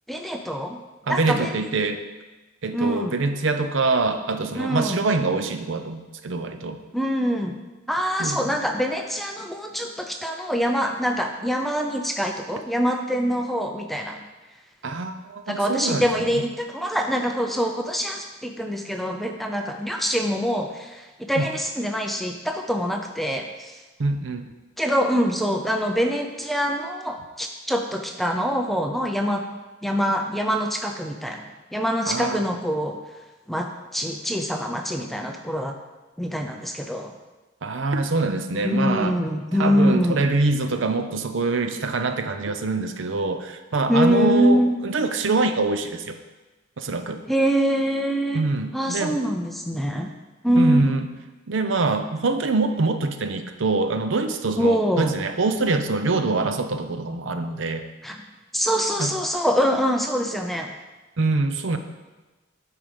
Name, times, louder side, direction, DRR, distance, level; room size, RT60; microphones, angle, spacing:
voice 1, 0.1-0.8 1.1-1.5 2.7-3.1 4.5-5.0 6.9-7.6 7.9-14.3 15.5-23.8 24.8-29.4 29.8-33.0 33.5-35.7 36.2-37.1 38.6-40.2 43.9-44.7 47.3-48.4 48.7-50.1 50.4-51.0 54.6-55.2 58.0-58.2 58.5-60.7, equal, ahead, 3 dB, 0.4 m, -24 dB
voice 2, 1.1-2.0 2.6-6.8 8.2-8.6 14.8-16.1 21.4-21.5 24.0-24.5 32.1-32.5 37.6-39.2 39.6-46.2 46.8-47.2 48.3-49.2 50.6-51.0 51.5-57.8 59.0-59.1 61.2-61.8, right 3 dB, 65° right, 8 dB, 0.6 m, -24 dB
9.0 x 4.7 x 5.1 m, 1.2 s
head